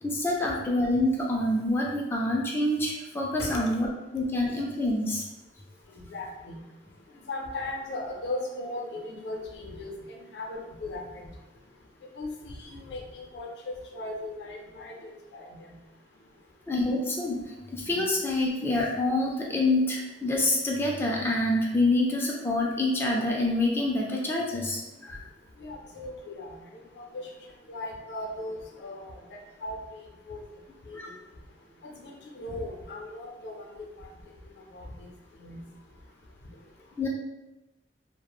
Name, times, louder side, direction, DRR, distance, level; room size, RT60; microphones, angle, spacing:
voice 1, 0.0-3.9 4.1-5.2 16.7-17.4 17.7-25.2 31.0-31.1 37.0-37.1, left 2 dB, 15° left, -3 dB, 0.3 m, -26 dB
voice 2, 5.9-6.6 7.3-11.3 12.2-13.5 13.9-15.8 25.6-26.6 27.0-27.2 27.7-30.4 30.9-31.0 32.0-34.1 34.7-35.1 35.4-35.6, left 2 dB, 75° left, 0 dB, 0.5 m, -38 dB
3.0 x 2.1 x 2.2 m, 1.0 s
head